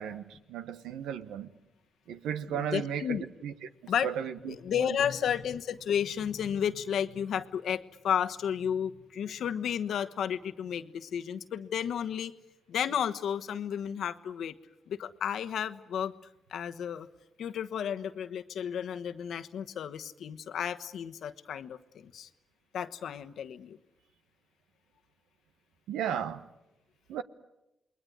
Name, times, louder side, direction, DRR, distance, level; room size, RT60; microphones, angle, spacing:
voice 1, 0.0-1.5 2.1-3.2 3.4-3.5 4.0-4.6 25.9-26.4 27.1-27.2, right 8 dB, 90° right, 1.2 m, -34 dB
voice 2, 2.5-3.2 3.9-4.1 4.4-12.3 12.7-14.5 14.9-16.1 16.5-17.1 17.4-22.3 22.7-23.8, left 8 dB, 75° left, 1.2 m, -32 dB
28.5 x 21.0 x 9.6 m
supercardioid pair, 55°, 0 cm